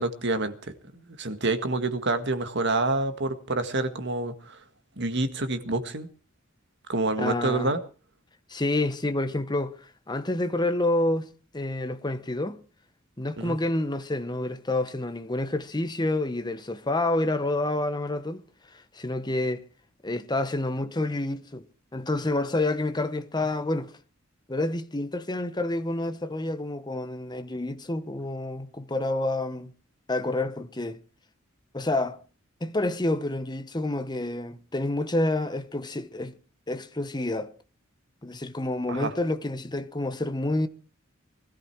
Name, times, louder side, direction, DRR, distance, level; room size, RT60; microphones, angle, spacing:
voice 1, 0.0-4.6 5.0-6.1 6.9-7.8 13.4-13.6 38.9-39.1, right 2 dB, 60° right, 1.8 m, -28 dB
voice 2, 7.2-7.7 8.5-11.3 11.5-12.6 13.2-18.4 18.7-19.6 20.0-21.7 21.9-23.9 24.5-29.7 30.1-31.0 31.7-32.2 32.6-36.3 36.7-37.5 38.2-40.7, left 2 dB, 20° left, 1.1 m, -28 dB
20.0 x 13.5 x 4.7 m
head